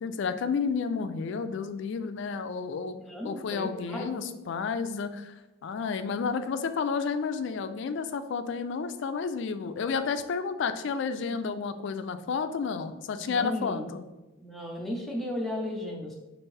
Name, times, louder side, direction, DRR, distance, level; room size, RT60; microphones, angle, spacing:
voice 1, 0.0-3.0 3.2-5.3 5.6-14.0, left 5 dB, 55° left, 10 dB, 0.3 m, -31 dB
voice 2, 3.0-4.1 13.2-13.9 14.4-16.1, left 1 dB, ahead, -2 dB, 0.6 m, -35 dB
5.5 x 2.5 x 3.2 m, 1.0 s
head